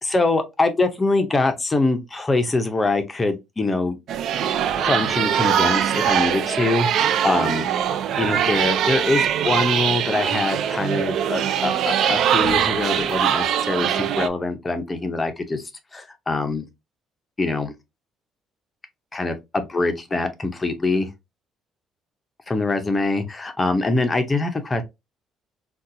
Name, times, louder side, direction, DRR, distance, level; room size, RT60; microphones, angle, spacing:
voice 1, 0.0-4.0 4.8-7.7 8.2-16.7 17.4-17.7 19.1-21.1 22.5-24.8, left 3 dB, 15° left, 0.5 m, -24 dB
sound 1, 4.1-14.3, right 9 dB, 60° right, 0.3 m, -22 dB
4.0 x 2.2 x 2.6 m
cardioid pair, 165°, 0 cm